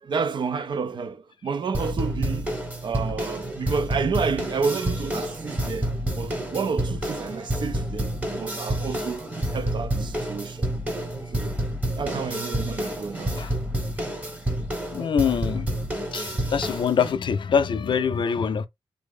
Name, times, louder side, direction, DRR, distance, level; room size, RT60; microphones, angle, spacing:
voice 1, 0.0-10.7 11.3-11.6 12.0-13.3, right 5 dB, 50° right, 0.4 m, -30 dB
sound 1, 1.7-17.1, right 1 dB, 15° right, 1.0 m, -29 dB
voice 2, 14.9-15.7 16.1-18.7, left 6 dB, 55° left, 0.4 m, -24 dB
3.4 x 2.0 x 3.5 m
wide cardioid pair, 135°, 10 cm